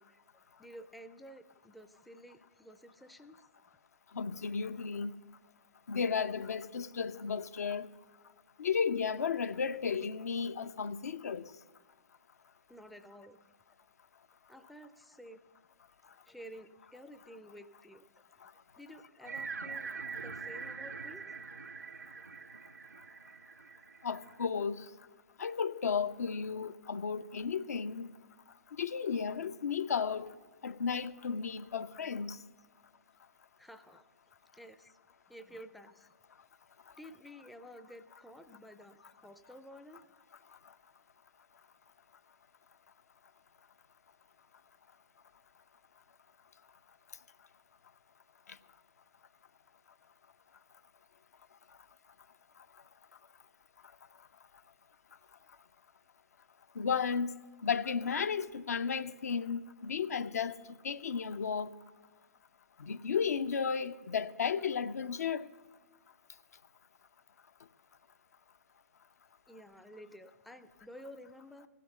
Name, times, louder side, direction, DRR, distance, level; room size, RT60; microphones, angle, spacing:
voice 1, 0.0-3.5 12.7-13.4 14.5-15.4 16.3-18.3 18.8-19.9 20.2-21.3 33.6-34.0 34.5-35.0 35.3-36.1 37.0-40.0 69.5-71.7, equal, ahead, 0.4 m, -52 dB
voice 2, 4.1-5.2 5.9-7.9 8.6-11.5 18.4-18.5 24.0-24.9 25.4-28.1 28.8-30.3 30.6-32.4 56.8-57.4 57.6-60.6 60.8-61.7 62.8-65.5, left 6 dB, 70° left, 0.5 m, -34 dB
sound 1, 19.2-24.4, right 5 dB, 85° right, 0.5 m, -44 dB
16.0 x 6.0 x 6.6 m
figure-of-eight pair, 125°, 9 cm